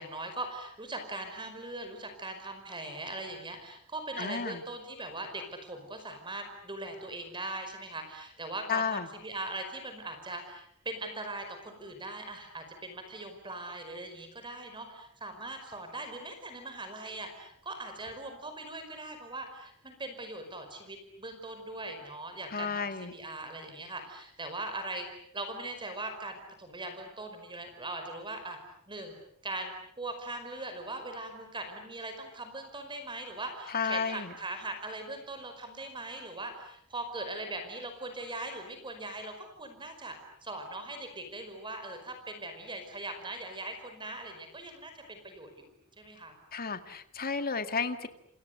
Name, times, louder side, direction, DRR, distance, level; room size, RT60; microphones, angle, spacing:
voice 1, 0.0-28.6 28.9-29.2 29.4-40.2 40.4-46.4, right 2 dB, 20° right, 7 dB, 5.2 m, -40 dB
voice 2, 4.2-4.6 8.7-9.1 22.5-23.1 33.7-34.3 46.5-48.1, left 5 dB, 45° left, 9 dB, 2.0 m, -32 dB
29.0 x 29.0 x 6.8 m, 0.67 s
head